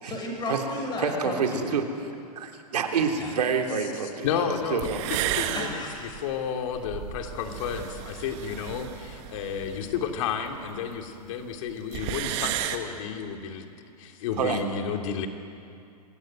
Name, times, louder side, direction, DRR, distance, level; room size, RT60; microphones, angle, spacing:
voice 1, 0.0-1.7 3.2-3.3 5.5-6.2, left 2 dB, 20° left, 0 dB, 7.4 m, -34 dB
voice 2, 1.0-1.8 2.4-5.0 14.4-14.6, right 6 dB, 75° right, 3 dB, 3.3 m, -27 dB
voice 3, 4.2-13.7 14.0-15.3, left 7 dB, 50° left, 4 dB, 3.0 m, -32 dB
sound 1, 4.5-4.6 4.8-10.8 11.1-11.2 11.4-11.5 11.7-12.8, right 11 dB, 45° right, 1.9 m, -33 dB
26.5 x 17.5 x 9.2 m, 2.5 s
hypercardioid pair, 125°, 20 cm